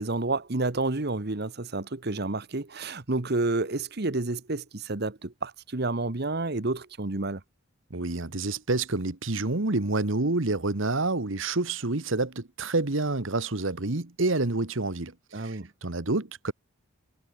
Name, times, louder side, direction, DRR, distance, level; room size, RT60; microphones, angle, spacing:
voice 1, 0.0-7.4 15.3-15.7, right 2 dB, 50° right, 1.3 m, -30 dB
voice 2, 7.9-16.5, right 2 dB, 70° right, 1.5 m, -28 dB
head